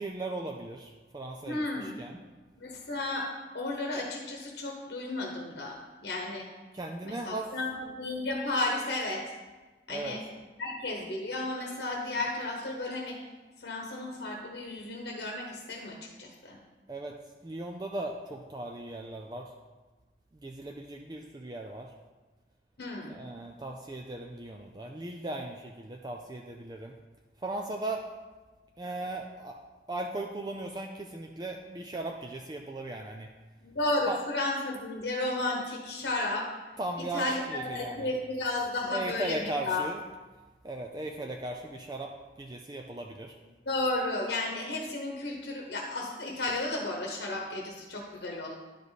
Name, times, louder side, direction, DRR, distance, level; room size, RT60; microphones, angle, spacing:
voice 1, 0.0-2.2 6.7-7.5 9.9-10.2 16.9-17.2 17.4-19.5 20.4-21.9 23.1-26.9 27.4-28.0 28.8-29.6 29.9-33.3 34.1-34.2 36.8-38.1 38.9-40.0 40.6-42.1 42.4-43.4, right 2 dB, 20° right, 2 dB, 0.4 m, -37 dB
voice 2, 1.5-2.0 2.6-3.3 3.5-5.7 6.0-6.4 7.0-9.2 9.9-10.2 10.6-13.2 13.6-16.6 22.8-23.2 33.6-36.5 37.0-39.8 43.6-48.5, left 2 dB, 70° left, 0 dB, 1.1 m, -33 dB
11.0 x 5.0 x 4.1 m, 1.2 s
head